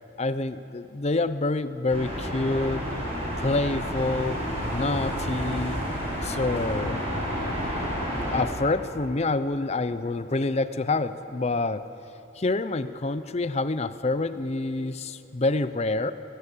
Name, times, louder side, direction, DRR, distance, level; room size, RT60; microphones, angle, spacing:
voice 1, 0.2-2.9 3.4-4.4 4.7-5.8 6.2-7.0 8.3-11.8 12.4-16.1, left 2 dB, 35° left, 12 dB, 0.6 m, -27 dB
sound 1, 1.9-8.4, equal, 35° right, 6.6 m, -30 dB
20.5 x 16.5 x 8.5 m, 2.9 s
head